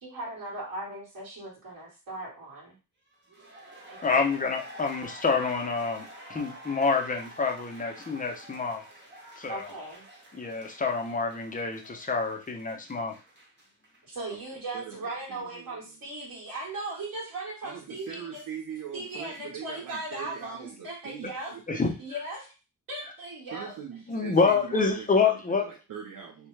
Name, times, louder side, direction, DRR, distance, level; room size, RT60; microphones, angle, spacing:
voice 1, 0.0-2.8 3.9-4.3 9.5-10.0 14.0-18.4 18.9-21.6 22.0-22.5 22.9-23.8, right 2 dB, 90° right, -6 dB, 1.4 m, -38 dB
sound 1, 3.1-14.0 14.3-14.4, right 1 dB, 30° right, 1.0 m, -48 dB
voice 2, 4.0-8.8 9.4-9.7 10.3-13.1 21.7-21.9 24.1-25.6, left 4 dB, 25° left, 1 dB, 0.6 m, -27 dB
voice 3, 14.7-15.8 17.6-21.8 23.5-26.5, right 7 dB, 75° right, 0 dB, 0.6 m, -42 dB
2.8 x 2.2 x 3.2 m, 0.31 s
wide cardioid pair, 115°, 34 cm